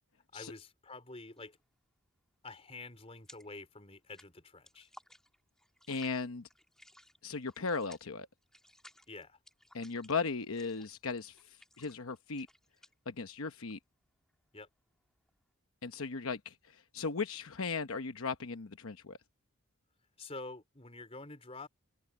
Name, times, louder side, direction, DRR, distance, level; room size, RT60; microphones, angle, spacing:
voice 1, 0.3-1.6 2.4-4.9 9.1-9.4 14.5-14.7 20.2-21.7, left 3 dB, 30° left, 4.1 m, -48 dB
sound 1, 1.3-1.6 1.9-3.7 3.9-15.5, left 1 dB, 5° left, 1.7 m, -60 dB
voice 2, 5.9-6.5 7.2-8.3 9.7-12.5 13.1-13.8 15.8-19.2, left 4 dB, 75° left, 0.9 m, -37 dB
head